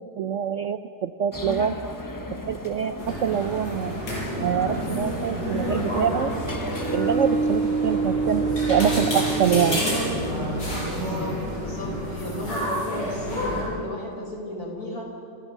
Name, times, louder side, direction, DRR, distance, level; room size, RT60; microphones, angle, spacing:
voice 1, 0.2-1.8 2.5-6.3 6.9-9.9, right 8 dB, 65° right, 10 dB, 0.8 m, -25 dB
sound 1, 1.3-7.0, left 1 dB, 15° left, 0.8 m, -35 dB
sound 2, 3.0-13.6, equal, 90° left, 7.3 m, -29 dB
sound 3, 3.8-10.6, right 4 dB, 40° right, 1.9 m, -29 dB
voice 2, 10.7-15.1, left 1 dB, 60° left, 0 dB, 5.0 m, -35 dB
29.0 x 15.0 x 7.3 m, 2.7 s
omnidirectional pair, 1.8 m